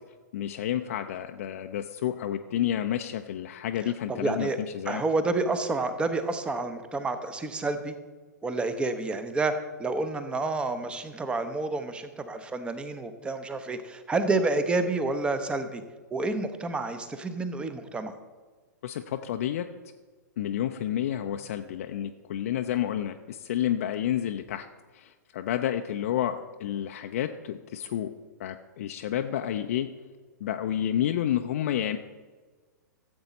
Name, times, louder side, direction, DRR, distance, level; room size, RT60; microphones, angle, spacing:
voice 1, 0.3-4.5 4.7-5.0 18.8-19.7 20.4-24.7 24.9-28.1 28.4-29.9 30.4-32.0, left 11 dB, 50° left, 6 dB, 0.5 m, -30 dB
voice 2, 4.1-4.6 4.9-7.9 8.4-9.5 9.8-15.8 16.1-18.1, right 3 dB, 10° right, 10 dB, 0.8 m, -29 dB
14.0 x 7.8 x 4.2 m, 1.4 s
figure-of-eight pair, 110°, 10 cm